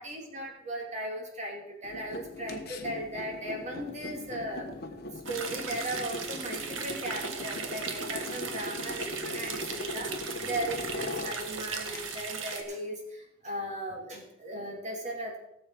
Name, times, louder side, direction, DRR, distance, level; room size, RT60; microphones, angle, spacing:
voice 1, 0.0-15.4, right 1 dB, 35° right, 1 dB, 2.6 m, -37 dB
puodel letai, 1.8-12.2, left 1 dB, 50° left, 1.2 m, -40 dB
sound 1, 5.3-12.6, right 5 dB, 80° right, 1.5 m, -37 dB
17.0 x 7.1 x 4.7 m, 0.80 s
head